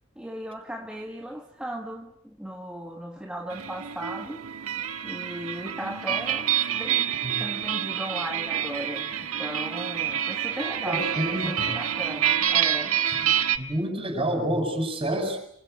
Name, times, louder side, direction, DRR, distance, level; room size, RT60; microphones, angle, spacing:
voice 1, 0.1-4.8 5.0-7.1 7.4-13.0, equal, 5° right, 1.5 m, -37 dB
sound 1, 3.5-13.6, right 9 dB, 90° right, 1.5 m, -27 dB
voice 2, 10.8-11.7 13.2-13.3 13.6-15.4, right 1 dB, 25° right, 6.8 m, -28 dB
26.5 x 24.0 x 8.1 m
head